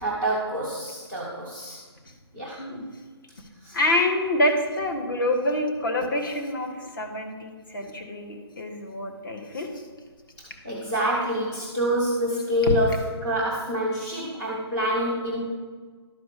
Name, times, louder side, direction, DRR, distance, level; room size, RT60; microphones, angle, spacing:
voice 1, 0.0-1.8 2.3-2.6 3.6-3.8 10.4-15.4, equal, 5° left, -7 dB, 0.4 m, -27 dB
voice 2, 3.7-9.8, left 1 dB, 50° left, 3 dB, 1.5 m, -26 dB
11.5 x 4.5 x 6.6 m, 1.5 s
hypercardioid pair, 175°, 14 cm